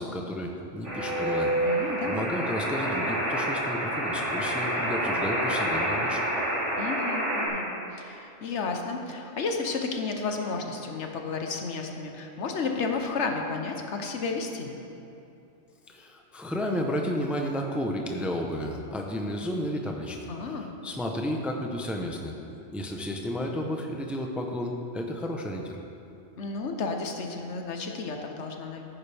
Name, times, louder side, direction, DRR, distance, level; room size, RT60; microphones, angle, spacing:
voice 1, 0.0-1.5 2.1-6.2 15.9-20.3 20.8-22.3 22.7-25.8, equal, ahead, 1 dB, 0.7 m, -32 dB
sound 1, 0.8-7.5, right 1 dB, 80° right, 3.1 m, -28 dB
voice 2, 1.6-2.2 6.8-14.8 20.3-20.7 26.4-28.8, left 4 dB, 75° left, 3 dB, 1.2 m, -32 dB
14.0 x 10.5 x 3.5 m, 2.8 s
omnidirectional pair, 1.2 m